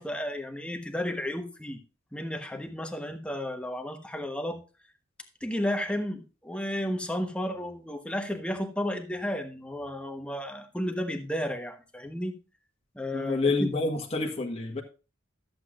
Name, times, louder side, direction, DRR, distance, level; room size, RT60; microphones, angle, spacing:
voice 1, 0.0-1.8 2.1-4.6 5.4-12.3 12.9-13.7, left 1 dB, 5° left, 1.2 m, -33 dB
voice 2, 13.1-14.8, left 3 dB, 30° left, 1.5 m, -28 dB
13.5 x 8.0 x 2.5 m
head